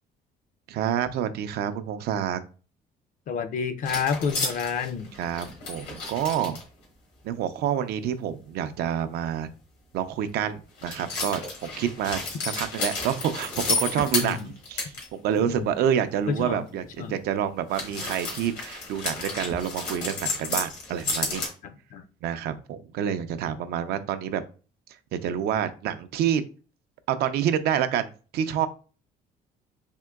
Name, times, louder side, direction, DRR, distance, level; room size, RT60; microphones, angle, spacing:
voice 1, 0.7-2.4 5.2-6.6 7.2-9.5 9.9-12.2 12.6-21.4 22.2-24.4 25.1-26.4 27.1-28.7, right 9 dB, 70° right, 0.4 m, -28 dB
voice 2, 3.3-5.1 14.1-14.5 15.4-15.7 16.3-16.6 17.0-17.1 21.6-22.0, left 6 dB, 50° left, 0.5 m, -29 dB
sound 1, 3.8-6.6 10.8-15.1 15.4-15.5 17.7-21.5, left 3 dB, 80° left, 1.4 m, -32 dB
3.6 x 2.9 x 2.2 m
cardioid pair, 110°, 17 cm